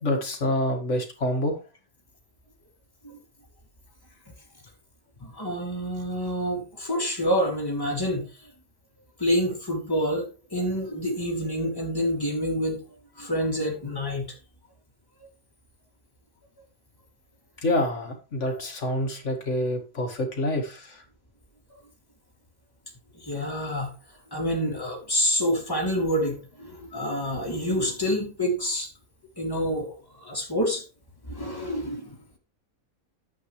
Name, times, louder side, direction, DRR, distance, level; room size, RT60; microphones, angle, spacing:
voice 1, 0.0-1.6 17.6-21.0, left 1 dB, 55° left, 2.3 m, -27 dB
voice 2, 5.2-8.5 9.2-12.8 13.2-14.3 18.5-18.6 23.1-23.9 24.3-28.9 29.4-30.8 31.3-32.2, equal, 15° left, 2.6 m, -27 dB
10.0 x 8.0 x 3.2 m
omnidirectional pair, 1.5 m